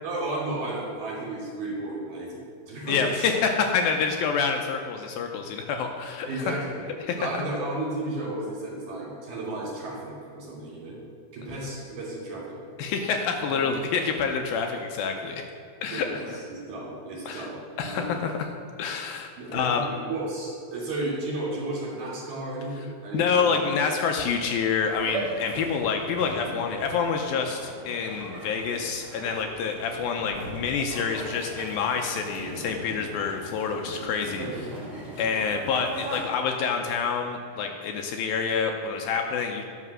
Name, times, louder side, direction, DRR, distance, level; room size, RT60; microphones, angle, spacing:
voice 1, 0.0-2.3 2.7-3.3 6.2-6.9 7.2-11.0 11.3-12.6 13.3-13.8 15.8-17.5 17.8-18.1 19.4-23.7 34.4-34.7, right 2 dB, 55° right, -6 dB, 4.3 m, -33 dB
voice 2, 2.9-6.5 7.1-7.4 12.8-15.4 15.8-16.4 17.3-17.5 17.8-18.5 18.8-19.8 23.1-34.5 35.2-39.6, left 5 dB, 80° left, 3 dB, 2.3 m, -27 dB
sound 1, 24.9-36.2, right 1 dB, 35° right, 2.0 m, -39 dB
11.0 x 5.9 x 6.2 m, 2.3 s
omnidirectional pair, 4.5 m